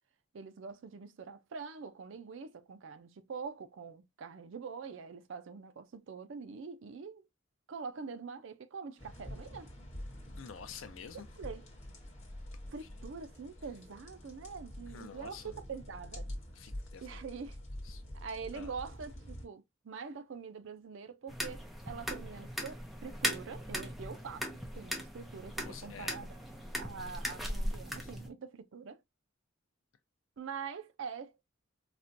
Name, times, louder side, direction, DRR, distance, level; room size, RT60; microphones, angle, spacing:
voice 1, 0.3-7.2 7.7-9.7 11.1-11.7 12.7-16.3 17.0-17.6 18.1-24.5 24.7-26.4 26.8-29.0 30.4-31.3, right 5 dB, 65° right, 0.4 m, -44 dB
sound 1, 9.0-19.5, left 1 dB, 35° left, 1.1 m, -47 dB
voice 2, 10.4-11.3 12.8-13.1 14.9-15.5 16.5-17.2 17.8-18.0 18.5-18.7 25.6-26.2 28.0-28.1, left 6 dB, 70° left, 0.6 m, -49 dB
sound 2, 21.3-28.3, equal, ahead, 0.5 m, -39 dB
4.2 x 2.2 x 2.5 m
head